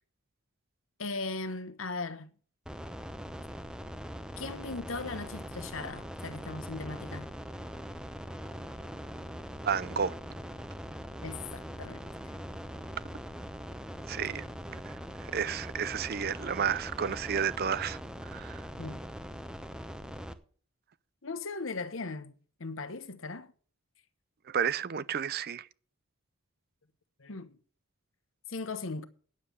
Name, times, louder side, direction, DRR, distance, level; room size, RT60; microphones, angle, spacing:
voice 1, 1.0-2.3 4.4-7.3 11.2-12.1 18.8-19.1 21.2-23.5 27.2-27.6 28.5-29.1, left 3 dB, 70° left, 1.1 m, -38 dB
sound 1, 2.7-20.3, equal, 5° right, 0.8 m, -42 dB
voice 2, 9.6-10.1 14.1-14.8 15.2-18.6 24.5-25.7, right 7 dB, 45° right, 0.5 m, -32 dB
9.7 x 7.3 x 8.4 m
head